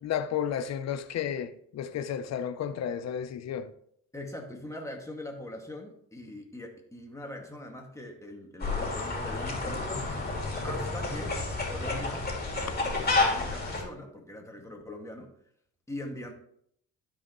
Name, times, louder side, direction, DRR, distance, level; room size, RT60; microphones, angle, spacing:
voice 1, 0.0-3.7, left 9 dB, 60° left, 0.8 m, -32 dB
voice 2, 4.1-10.1 10.6-11.4 11.7-12.3 12.8-15.3 15.9-16.3, left 1 dB, 10° left, 2.0 m, -41 dB
sound 1, 8.6-13.8, left 3 dB, 30° left, 2.7 m, -30 dB
12.5 x 4.9 x 3.1 m
cardioid pair, 90°, 30 cm